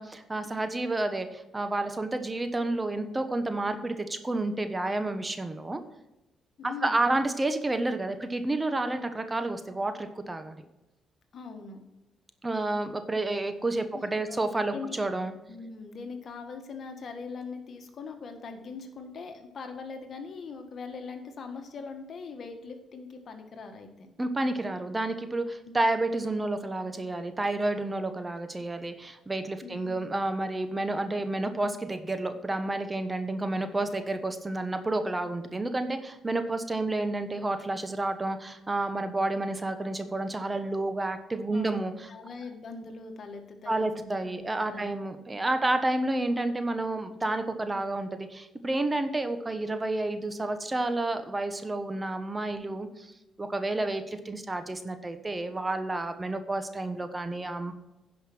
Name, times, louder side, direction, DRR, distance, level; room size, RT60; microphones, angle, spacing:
voice 1, 0.0-5.8 6.6-10.6 12.4-15.3 24.2-42.1 43.7-53.1 53.4-57.8, right 2 dB, 25° right, 9 dB, 1.1 m, -30 dB
voice 2, 6.6-7.0 11.3-11.8 13.9-14.4 14.7-15.0 15.5-24.1 25.6-26.0 29.6-30.1 33.9-34.0 41.5-44.9, left 4 dB, 55° left, 5 dB, 1.6 m, -41 dB
10.5 x 5.4 x 6.1 m, 0.97 s
supercardioid pair, 65°, 0 cm